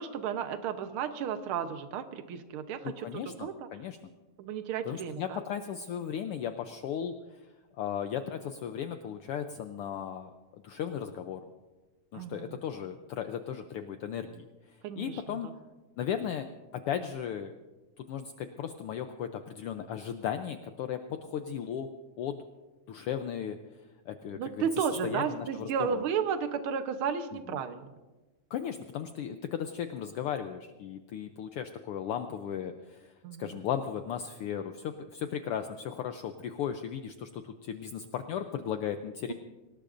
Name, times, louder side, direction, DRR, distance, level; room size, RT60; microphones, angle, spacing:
voice 1, 0.0-3.7 4.4-5.4 12.1-12.6 14.8-15.4 24.3-27.9 33.2-33.6, right 7 dB, 65° right, 8 dB, 1.5 m, -33 dB
voice 2, 2.8-4.0 4.9-7.4 7.8-11.4 12.1-15.5 16.0-16.5 16.7-17.5 18.0-21.9 22.2-22.4 22.9-23.6 24.1-26.0 27.5-27.6 28.5-33.1 33.4-39.3, left 8 dB, 85° left, 7 dB, 1.2 m, -36 dB
25.0 x 18.5 x 2.6 m, 1.2 s
omnidirectional pair, 3.3 m